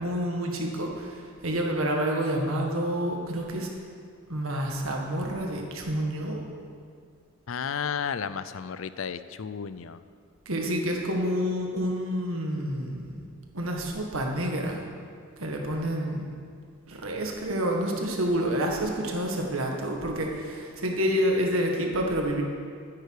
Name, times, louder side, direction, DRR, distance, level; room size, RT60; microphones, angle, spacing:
voice 1, 0.0-3.7 4.3-6.4 10.5-13.2 13.5-14.8 15.4-16.3 16.9-22.4, equal, 85° right, 1 dB, 1.8 m, -28 dB
voice 2, 7.5-10.0, left 7 dB, 70° left, 13 dB, 0.5 m, -33 dB
14.0 x 9.7 x 4.8 m, 2.2 s
head